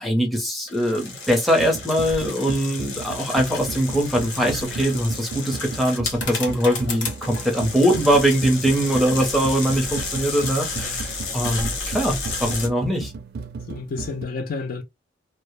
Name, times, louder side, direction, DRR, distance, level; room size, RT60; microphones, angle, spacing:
voice 1, 0.0-13.1, equal, ahead, 0.6 m, -22 dB
sound 1, 0.7-12.7, left 4 dB, 80° left, 0.9 m, -32 dB
sound 2, 1.6-14.2, right 4 dB, 55° right, 0.4 m, -35 dB
voice 2, 13.6-14.8, left 4 dB, 50° left, 0.4 m, -30 dB
2.0 x 2.0 x 2.9 m
head